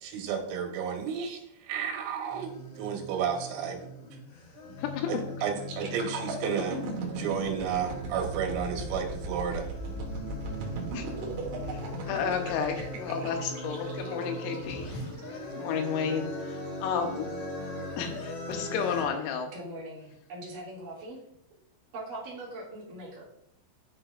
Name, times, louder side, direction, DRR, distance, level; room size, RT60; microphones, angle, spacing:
voice 1, 0.0-3.8 5.1-9.7, right 7 dB, 85° right, 2 dB, 4.0 m, -32 dB
sound 1, 2.3-19.0, left 1 dB, 55° left, 2.1 m, -40 dB
voice 2, 4.8-5.2 10.9-11.1 12.1-14.9 15.6-17.4 18.0-19.5, left 6 dB, 80° left, 4 dB, 3.6 m, -32 dB
sound 2, 5.5-15.4 15.8-16.0, right 3 dB, 70° right, 3.6 m, -38 dB
voice 3, 19.5-21.2 21.9-23.2, right 1 dB, 45° right, -5 dB, 3.5 m, -41 dB
12.5 x 5.7 x 2.5 m, 0.73 s
omnidirectional pair, 5.9 m